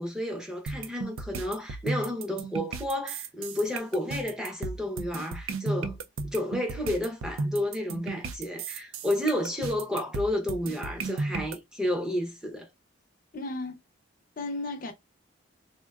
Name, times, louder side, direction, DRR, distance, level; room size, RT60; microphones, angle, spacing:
voice 1, 0.0-6.0 6.3-12.7, left 1 dB, 5° right, 0.7 m, -31 dB
sound 1, 0.7-11.6, right 3 dB, 85° right, 0.4 m, -34 dB
voice 2, 13.3-13.8 14.4-14.9, left 2 dB, 45° left, 0.6 m, -34 dB
3.6 x 2.1 x 2.3 m
head